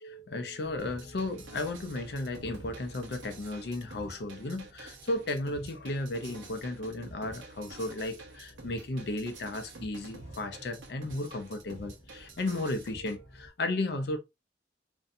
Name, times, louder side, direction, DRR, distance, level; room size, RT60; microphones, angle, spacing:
voice 1, 0.0-14.2, left 2 dB, 60° left, 0.5 m, -34 dB
sound 1, 0.6-13.5, equal, 20° left, 0.9 m, -55 dB
sound 2, 0.8-13.2, right 3 dB, 80° right, 0.7 m, -49 dB
2.6 x 2.2 x 2.6 m
head